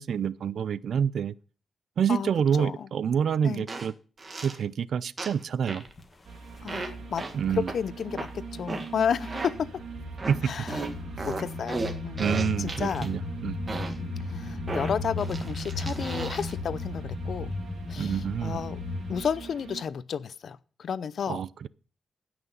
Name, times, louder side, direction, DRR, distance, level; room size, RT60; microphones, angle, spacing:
voice 1, 0.0-1.3 2.0-3.9 4.4-5.8 7.3-7.7 10.3-10.5 12.2-13.6 18.0-18.6 21.3-21.7, right 7 dB, 70° right, 0.4 m, -27 dB
sound 1, 3.7-3.9 4.2-4.6 5.2-5.4 5.7-5.9 6.7-6.9 7.2-7.3 7.7-7.8 8.2-8.3 8.7-8.9 9.2-9.5 10.2-10.4 10.7-13.1 13.7-14.0 14.7-16.5, right 3 dB, 35° right, 1.8 m, -35 dB
sound 2, 5.9-6.0 6.5-7.7 8.0-9.0 9.5-19.2, left 2 dB, 30° left, 1.7 m, -36 dB
sound 3, 6.2-19.8, right 4 dB, 90° right, 3.2 m, -43 dB
voice 2, 6.6-9.7 10.4-10.9 11.2-12.3 12.6-13.1 14.3-17.5 17.9-18.8 19.1-21.4, left 7 dB, 65° left, 0.6 m, -32 dB
16.0 x 6.0 x 5.5 m
wide cardioid pair, 115°, 0 cm